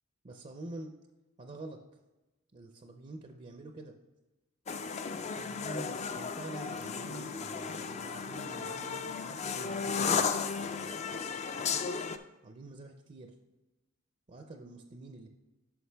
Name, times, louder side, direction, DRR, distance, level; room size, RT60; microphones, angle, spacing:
voice 1, 0.2-0.9 1.4-1.8 2.5-4.0 5.1-11.0 11.5-12.1 12.4-13.4 14.3-15.3, right 2 dB, 30° right, 5 dB, 0.5 m, -47 dB
sound 1, 4.7-12.2, left 5 dB, 30° left, 0.4 m, -34 dB
9.5 x 6.0 x 3.4 m, 1.1 s
head